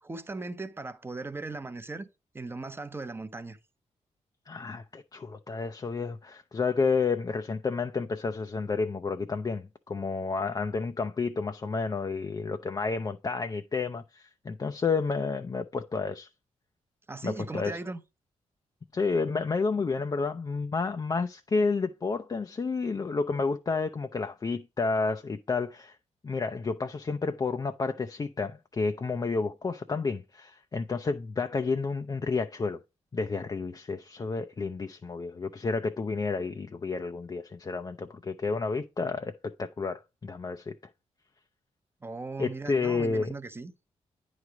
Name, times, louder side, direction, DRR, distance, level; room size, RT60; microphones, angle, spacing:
voice 1, 0.0-2.1 2.3-3.6 17.1-18.0 42.0-43.7, right 3 dB, 20° right, 0.7 m, -38 dB
voice 2, 4.5-16.3 17.2-17.8 18.9-26.0 26.2-32.8 33.1-39.3 39.6-40.7 42.4-43.4, left 4 dB, 30° left, 0.5 m, -30 dB
9.5 x 3.2 x 4.9 m
cardioid pair, 95°, 12 cm